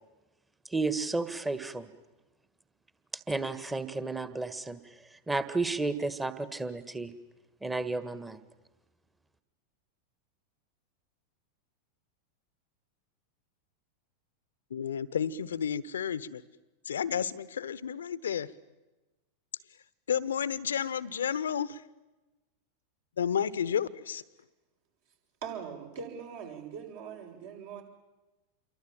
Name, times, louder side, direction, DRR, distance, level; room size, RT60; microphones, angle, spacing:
voice 1, 0.7-1.9 3.3-4.8 5.3-7.1 7.6-8.4, right 3 dB, 10° right, 12 dB, 1.7 m, -32 dB
voice 2, 14.7-16.4 16.8-18.5 20.1-21.8 23.2-24.2, left 8 dB, 65° left, 18 dB, 1.1 m, -31 dB
voice 3, 25.4-27.8, right 6 dB, 55° right, 2 dB, 6.8 m, -41 dB
28.5 x 23.5 x 8.9 m, 1.1 s
figure-of-eight pair, 90°, 0 cm